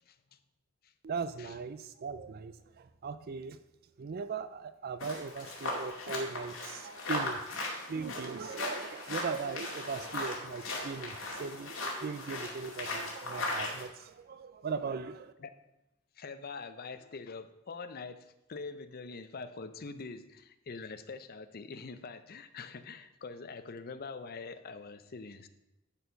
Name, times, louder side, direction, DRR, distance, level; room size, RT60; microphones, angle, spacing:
voice 1, 1.0-3.6 4.0-7.4 7.9-15.3, right 5 dB, 45° right, 12 dB, 0.4 m, -39 dB
sound 1, 5.0-13.8, left 2 dB, 80° left, 2.3 m, -38 dB
voice 2, 16.2-25.5, left 4 dB, 45° left, 11 dB, 0.6 m, -44 dB
11.0 x 4.5 x 5.1 m, 0.91 s
head